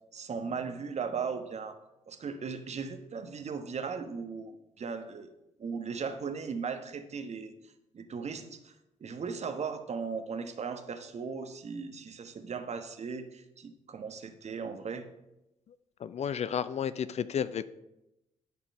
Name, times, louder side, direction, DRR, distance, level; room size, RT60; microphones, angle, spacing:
voice 1, 0.1-1.7 2.1-5.3 5.6-7.5 7.9-8.7 9.0-15.0, right 5 dB, 45° right, 7 dB, 1.2 m, -37 dB
voice 2, 16.0-17.7, left 8 dB, 45° left, 16 dB, 0.5 m, -32 dB
12.0 x 4.5 x 5.5 m, 0.91 s
hypercardioid pair, 40°, 15 cm